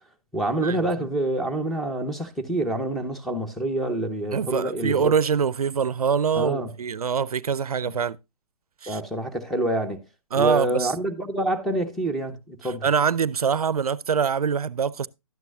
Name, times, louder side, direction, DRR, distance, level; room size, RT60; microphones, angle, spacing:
voice 1, 0.3-5.1 6.3-6.7 7.9-8.0 8.9-10.0 10.4-12.9, right 1 dB, ahead, 1.0 m, -27 dB
voice 2, 4.3-8.2 8.8-9.0 10.3-10.9 12.6-15.1, right 6 dB, 80° right, 0.5 m, -24 dB
12.0 x 9.5 x 2.5 m
figure-of-eight pair, 130°, 19 cm